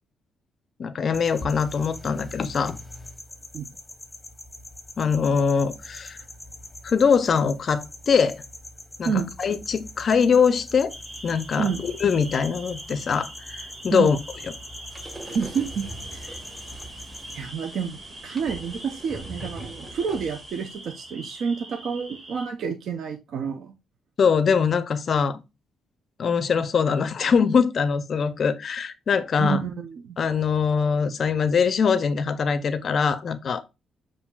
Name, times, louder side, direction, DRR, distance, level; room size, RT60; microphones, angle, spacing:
voice 1, 0.8-2.8 5.0-6.2 6.8-8.4 9.0-10.9 11.2-14.2 24.2-25.4 26.2-29.6 30.2-33.6, left 6 dB, 50° left, 0.4 m, -22 dB
sound 1, 1.1-17.5, left 1 dB, 15° left, 0.8 m, -42 dB
sound 2, 10.9-22.5, right 1 dB, 40° right, 1.4 m, -43 dB
sound 3, 14.9-20.8, right 1 dB, 15° right, 1.2 m, -42 dB
voice 2, 15.3-16.4 17.3-18.0 18.2-23.7 29.4-30.2, right 6 dB, 65° right, 0.5 m, -29 dB
6.9 x 2.6 x 2.3 m
cardioid pair, 90°, 0 cm